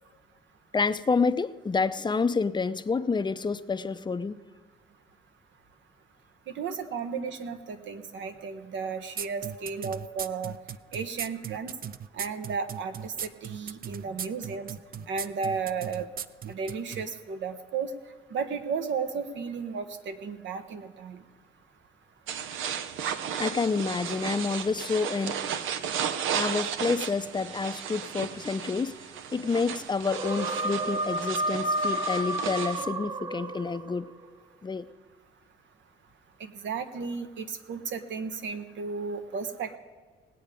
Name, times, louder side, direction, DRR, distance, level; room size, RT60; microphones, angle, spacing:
voice 1, 0.7-4.4 6.9-7.0 14.1-14.3 15.0-15.1 23.0-23.1 23.4-25.4 26.3-28.9 29.3-34.1 34.6-34.9, left 4 dB, 20° left, 12 dB, 0.5 m, -28 dB
voice 2, 6.5-10.5 10.9-11.7 12.1-14.7 15.1-16.1 16.4-17.9 18.3-21.2 36.4-39.8, right 5 dB, 70° right, 8 dB, 1.2 m, -34 dB
sound 1, 9.2-17.0, right 8 dB, 45° right, 0.5 m, -37 dB
sound 2, 22.3-32.9, right 8 dB, 85° right, 0.7 m, -34 dB
sound 3, 30.0-34.1, right 1 dB, 25° right, 1.2 m, -31 dB
19.0 x 8.6 x 5.1 m, 1.5 s
cardioid pair, 90°, 20 cm